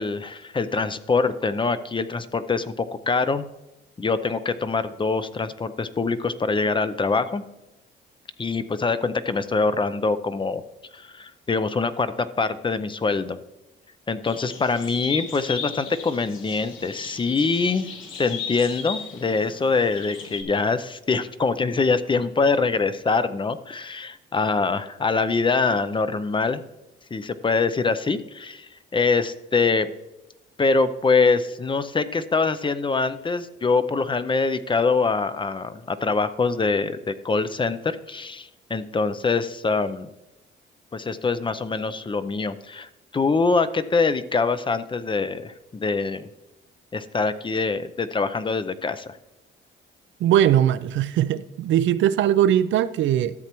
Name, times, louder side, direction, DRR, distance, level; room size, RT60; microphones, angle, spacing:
voice 1, 0.0-3.4 4.0-7.4 8.4-10.6 10.9-13.4 14.1-17.9 18.2-26.6 27.1-29.9 30.6-40.1 40.9-46.3 46.9-49.2, left 4 dB, 25° left, 12 dB, 0.5 m, -24 dB
sound 1, 14.2-20.4, left 6 dB, 85° left, 1.3 m, -36 dB
voice 2, 50.2-53.3, right 11 dB, 70° right, 14 dB, 0.5 m, -20 dB
13.0 x 7.2 x 3.0 m, 0.95 s
cardioid pair, 90°, 20 cm